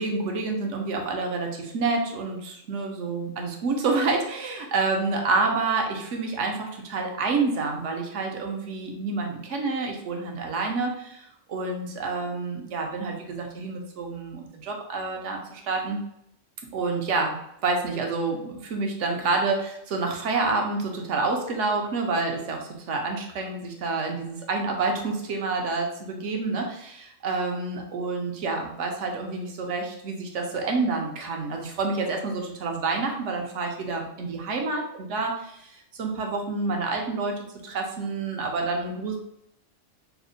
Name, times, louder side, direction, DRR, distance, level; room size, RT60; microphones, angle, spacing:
voice 1, 0.0-16.0 16.7-35.3 35.7-39.2, right 3 dB, 75° right, 2 dB, 1.0 m, -28 dB
3.4 x 2.1 x 3.8 m, 0.77 s
omnidirectional pair, 1.3 m